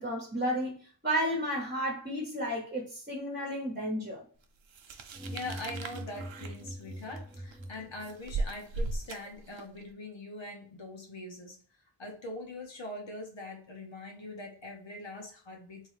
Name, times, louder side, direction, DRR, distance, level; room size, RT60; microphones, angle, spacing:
voice 1, 0.0-4.2, equal, 25° right, 1.1 m, -32 dB
sound 1, 4.7-9.8, right 2 dB, 90° right, 0.5 m, -38 dB
sound 2, 5.1-8.4, equal, ahead, 1.0 m, -43 dB
voice 2, 5.3-11.6 12.0-15.9, left 2 dB, 80° left, 1.1 m, -42 dB
3.7 x 2.3 x 3.1 m
wide cardioid pair, 55°, 44 cm